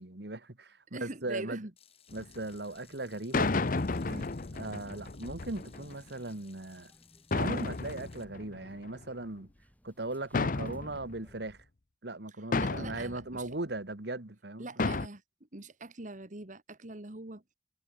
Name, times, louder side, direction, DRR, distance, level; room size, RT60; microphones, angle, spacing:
voice 1, 0.0-1.6 2.1-3.5 4.5-6.9 7.3-9.5 9.8-11.6 12.0-14.9, right 2 dB, 65° right, 2.0 m, -38 dB
voice 2, 0.9-1.7 4.1-4.3 12.6-13.5 14.6-15.2 15.5-17.5, right 2 dB, 45° right, 1.9 m, -44 dB
Water tap faucet / Sink (filling or washing), 1.8-8.2, left 8 dB, 35° left, 5.1 m, -61 dB
sound 1, 2.1-2.4 3.3-6.0 7.3-9.0 10.3-11.3 12.5-13.2 14.8-15.1, left 3 dB, 50° left, 0.8 m, -32 dB
sound 2, 2.7-11.6, equal, 10° left, 7.0 m, -63 dB
head